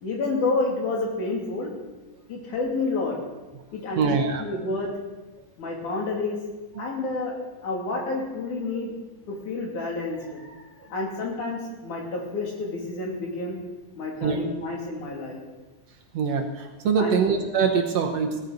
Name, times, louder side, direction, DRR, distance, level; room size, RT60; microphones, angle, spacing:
voice 1, 0.0-1.7 2.3-3.2 3.7-4.0 4.4-4.9 5.6-6.4 6.8-7.3 7.6-8.9 9.3-13.6 14.0-15.4 17.0-17.2, left 3 dB, 75° left, -1 dB, 4.1 m, -29 dB
voice 2, 4.0-4.4 6.8-6.9 14.2-14.4 16.1-18.4, right 5 dB, 65° right, 3 dB, 2.0 m, -23 dB
17.0 x 14.0 x 4.0 m, 1.2 s
omnidirectional pair, 3.6 m